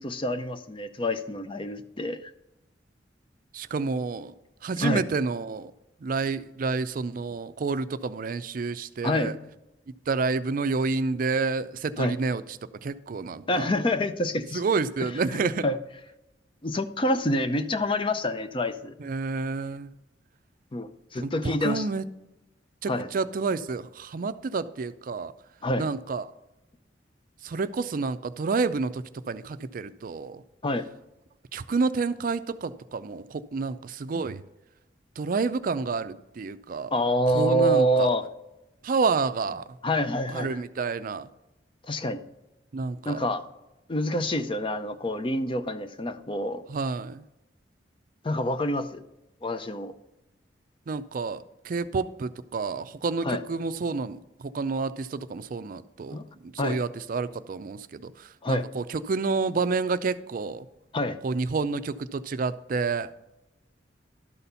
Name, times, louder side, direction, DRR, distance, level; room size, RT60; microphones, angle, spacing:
voice 1, 0.0-2.2 4.8-5.0 9.0-9.4 12.0-12.1 13.5-14.6 15.4-15.8 16.6-18.9 20.7-21.8 22.9-23.1 25.6-25.9 30.6-30.9 36.9-38.2 39.8-40.5 41.9-42.2 43.1-43.4 43.9-46.6 48.2-49.0 49.4-49.9 53.3-53.4 56.1-56.3 56.6-56.8 58.4-58.6 60.9-61.2, equal, 30° left, 10 dB, 0.6 m, -27 dB
voice 2, 3.5-4.3 4.6-5.7 6.0-9.4 10.1-13.7 14.5-15.7 19.0-19.9 21.2-22.0 22.8-25.3 25.8-26.3 27.4-30.4 31.5-34.4 35.2-37.0 37.3-38.1 38.8-39.7 40.3-41.3 42.7-43.2 46.7-47.2 50.9-60.7 61.2-63.1, right 4 dB, 50° right, 13 dB, 0.4 m, -29 dB
12.0 x 4.2 x 6.8 m, 0.93 s
head